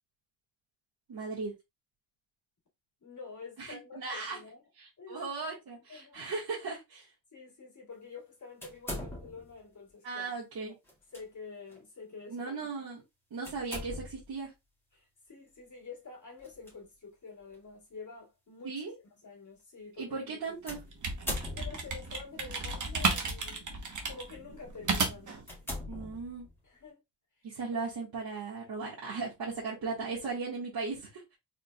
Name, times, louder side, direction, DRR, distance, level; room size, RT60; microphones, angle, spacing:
voice 1, 1.1-1.5 3.6-4.4 4.8-7.1 10.0-10.7 12.3-13.0 13.3-14.5 18.6-18.9 20.0-20.8 25.9-26.5 27.4-31.4, right 4 dB, 60° right, 1.7 m, -37 dB
voice 2, 3.0-4.6 5.0-5.2 5.9-6.3 7.3-10.3 11.1-12.6 14.9-18.8 19.1-20.2 21.5-25.4 26.6-27.0 27.4-27.5, left 4 dB, 45° left, 2.1 m, -48 dB
sound 1, 8.6-9.6 10.9-11.2 11.7-11.8 13.4-14.3 16.4-16.7 17.5-17.6 20.7-22.1 23.0-23.4 24.0-24.2 24.7-24.8 25.4-26.6, left 1 dB, 5° left, 2.0 m, -41 dB
sound 2, 20.7-25.4, right 3 dB, 45° right, 1.1 m, -33 dB
4.3 x 3.7 x 2.3 m
wide cardioid pair, 135°, 42 cm